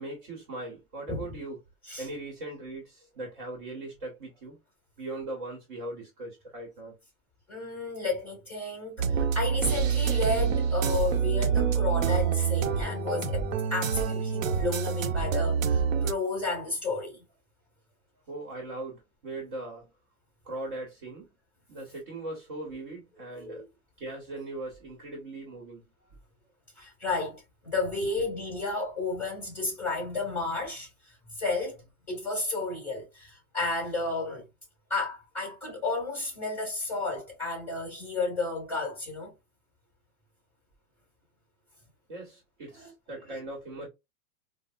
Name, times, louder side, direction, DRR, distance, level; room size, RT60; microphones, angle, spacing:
voice 1, 0.0-1.6 2.0-4.6 5.0-7.0 18.3-19.9 20.4-21.3 21.7-23.7 24.0-25.8 42.1-43.9, right 2 dB, 35° right, 1.0 m, -39 dB
voice 2, 7.5-17.2 23.3-23.6 26.8-34.4 34.9-39.3 42.8-42.9, left 3 dB, 5° left, 2.0 m, -32 dB
sound 1, 9.0-16.1, right 6 dB, 60° right, 0.6 m, -26 dB
4.5 x 2.0 x 2.4 m
hypercardioid pair, 175°, 44 cm